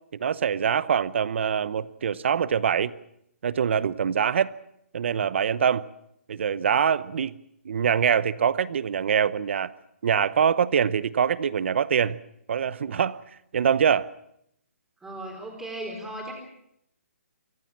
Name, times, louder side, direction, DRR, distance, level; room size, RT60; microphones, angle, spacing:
voice 1, 0.1-2.9 3.4-4.5 4.9-5.8 6.3-7.4 7.6-9.7 10.0-12.2 12.5-13.2 13.5-14.1, right 7 dB, 55° right, 18 dB, 0.9 m, -24 dB
voice 2, 15.0-16.3, right 1 dB, 5° right, 1 dB, 4.2 m, -36 dB
25.0 x 16.5 x 7.4 m, 0.75 s
hypercardioid pair, 165°, 8 cm